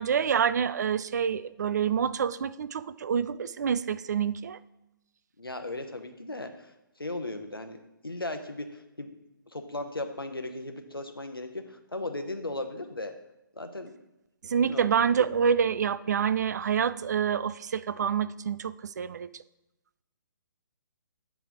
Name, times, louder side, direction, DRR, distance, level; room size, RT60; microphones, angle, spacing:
voice 1, 0.0-4.6 14.4-19.3, right 7 dB, 50° right, 16 dB, 0.3 m, -27 dB
voice 2, 5.4-7.8 8.0-9.1 9.5-13.1 13.5-13.9 14.6-15.0, left 2 dB, 90° left, 7 dB, 0.9 m, -37 dB
9.1 x 3.4 x 6.0 m, 0.93 s
figure-of-eight pair, 135°, 12 cm